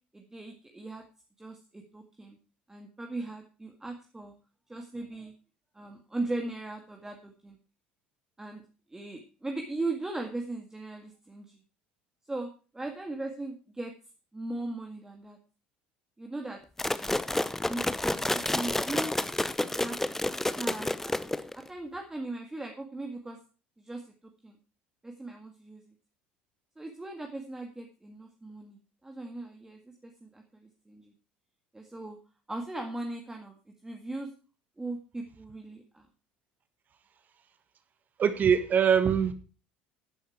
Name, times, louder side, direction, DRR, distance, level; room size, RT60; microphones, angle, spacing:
voice 1, 0.1-1.1 1.4-2.4 2.7-4.3 4.7-5.3 5.7-7.6 8.4-8.6 8.9-11.6 12.3-13.9 14.3-15.4 16.2-16.6 16.9-17.1 17.7-19.1 19.8-20.0 20.5-21.2 21.5-23.4 23.8-24.0 24.4-24.6 25.0-25.8 26.8-31.1 31.7-32.2 32.5-33.6 33.8-34.3 34.8-36.1, right 2 dB, 10° right, 1.9 m, -38 dB
sound 1, 16.8-21.7, left 1 dB, 5° left, 0.7 m, -30 dB
voice 2, 38.2-39.3, right 7 dB, 35° right, 1.4 m, -23 dB
12.0 x 10.5 x 4.6 m
figure-of-eight pair, 65°, 5 cm